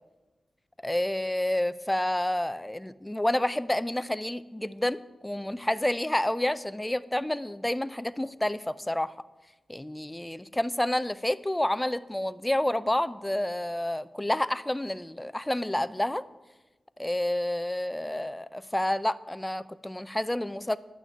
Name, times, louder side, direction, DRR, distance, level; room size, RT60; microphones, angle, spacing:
voice 1, 0.8-9.1 9.7-16.2 17.0-20.8, left 1 dB, 10° left, 14 dB, 0.5 m, -29 dB
10.5 x 6.2 x 8.9 m, 1.1 s
wide cardioid pair, 80°, 0 cm